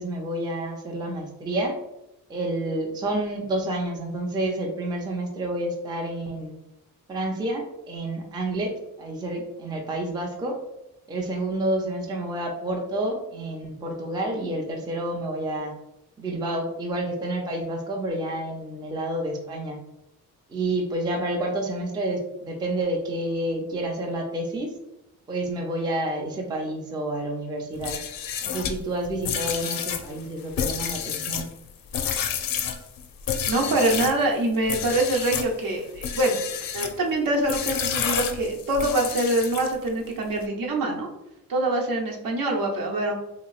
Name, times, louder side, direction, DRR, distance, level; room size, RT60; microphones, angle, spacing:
voice 1, 0.0-1.7 2.3-6.5 7.1-8.7 9.0-10.6 11.1-15.7 16.2-19.8 20.5-24.7 25.3-28.0 28.4-31.5, right 1 dB, 15° right, 0 dB, 0.4 m, -29 dB
sound 1, 27.7-34.2 34.6-35.5 36.0-37.0 37.5-39.9, left 8 dB, 75° left, 0.5 m, -30 dB
voice 2, 33.5-36.4 36.7-41.1 41.5-43.2, right 1 dB, 75° right, 1 dB, 0.8 m, -24 dB
3.6 x 2.9 x 2.3 m, 0.89 s
wide cardioid pair, 180°, 34 cm